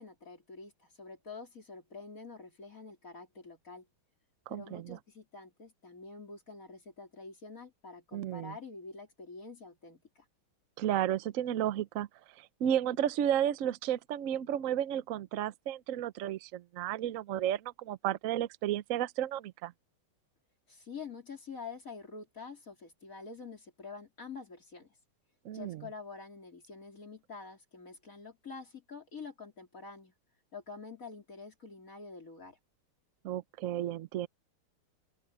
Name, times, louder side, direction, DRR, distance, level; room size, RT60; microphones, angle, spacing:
voice 1, 0.0-3.9 4.5-10.3 20.7-25.0 25.5-30.1 30.5-32.6, left 4 dB, 40° left, 3.7 m, -47 dB
voice 2, 4.5-5.0 8.1-8.5 10.8-12.1 12.4-19.7 25.4-25.8 33.2-34.3, right 11 dB, 80° right, 0.7 m, -33 dB
open air
omnidirectional pair, 2.4 m